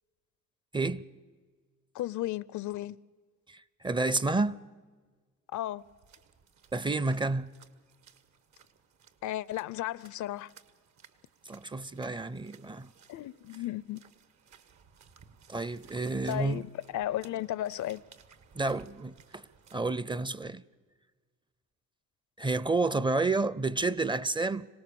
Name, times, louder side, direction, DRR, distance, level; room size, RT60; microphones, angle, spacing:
voice 1, 1.9-3.0 5.5-5.8 9.2-10.5 13.1-14.0 16.2-18.0, left 13 dB, 75° left, 0.6 m, -34 dB
voice 2, 3.5-4.6 6.7-7.5 11.5-12.9 15.5-16.6 18.5-20.6 22.4-24.7, right 3 dB, 15° right, 0.5 m, -30 dB
sound 1, 5.8-19.8, right 6 dB, 70° right, 1.5 m, -59 dB
25.5 x 18.0 x 6.9 m
cardioid pair, 90°, 30 cm